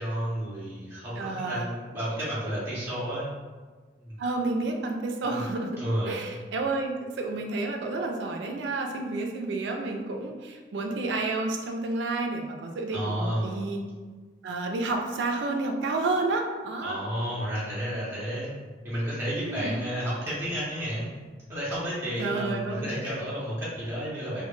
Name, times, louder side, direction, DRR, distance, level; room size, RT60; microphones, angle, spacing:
voice 1, 0.0-3.3 4.0-4.2 5.2-5.4 5.8-6.2 12.9-13.6 16.8-18.6 18.8-21.1 21.5-24.4, equal, 15° right, -10 dB, 0.5 m, -31 dB
voice 2, 1.2-1.7 4.2-13.8 14.4-17.0 19.4-19.7 22.2-22.9, right 3 dB, 70° right, 3 dB, 0.3 m, -30 dB
2.1 x 2.1 x 3.0 m, 1.4 s
head